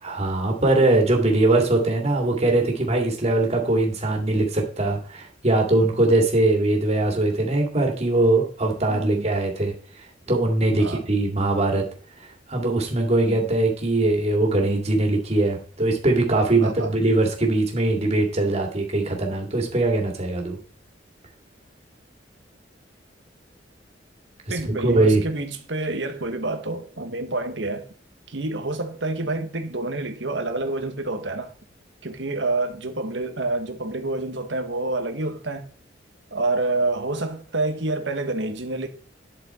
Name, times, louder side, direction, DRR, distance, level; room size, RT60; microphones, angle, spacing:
voice 1, 0.0-9.7 10.3-11.8 12.5-20.6 24.5-25.2, right 2 dB, 35° right, 2.6 m, -21 dB
voice 2, 8.9-9.3 10.8-11.1 13.2-13.4 16.6-16.9 24.5-27.9 28.3-31.5 32.0-35.7 36.3-38.9, right 2 dB, 80° right, 1.6 m, -28 dB
11.5 x 6.2 x 4.5 m
head